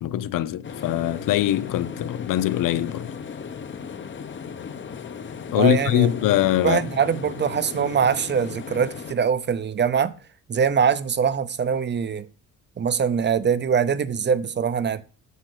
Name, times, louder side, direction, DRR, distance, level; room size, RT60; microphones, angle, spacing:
voice 1, 0.0-3.1 5.5-6.8, left 12 dB, 90° left, 0.8 m, -22 dB
sound 1, 0.6-9.2, left 6 dB, 35° left, 1.0 m, -36 dB
voice 2, 5.6-6.1 6.6-10.1 10.5-12.3 12.8-15.0, right 7 dB, 35° right, 0.8 m, -23 dB
9.6 x 7.7 x 6.6 m
cardioid pair, 145°, 31 cm